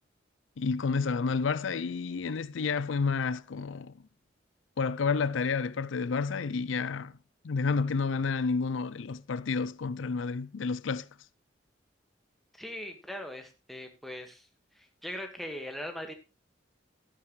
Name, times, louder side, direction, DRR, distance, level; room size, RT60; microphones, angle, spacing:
voice 1, 0.6-3.9 4.8-7.1 7.4-11.1, left 4 dB, 85° left, 0.5 m, -30 dB
voice 2, 12.5-14.5 14.8-16.1, left 1 dB, ahead, 1.7 m, -40 dB
13.0 x 10.5 x 3.2 m
head